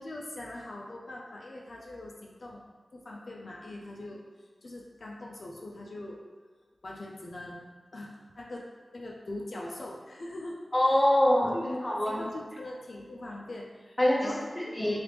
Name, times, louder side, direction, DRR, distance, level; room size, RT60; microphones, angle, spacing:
voice 1, 0.0-2.6 2.9-4.2 4.6-6.2 6.8-7.7 7.9-8.7 8.9-10.6 11.5-11.7 12.1-15.0, left 1 dB, 70° left, -1 dB, 0.3 m, -42 dB
voice 2, 10.7-12.2 14.0-15.0, left 1 dB, 15° left, -4 dB, 0.7 m, -25 dB
3.0 x 2.4 x 3.3 m, 1.4 s
cardioid pair, 50°, 0 cm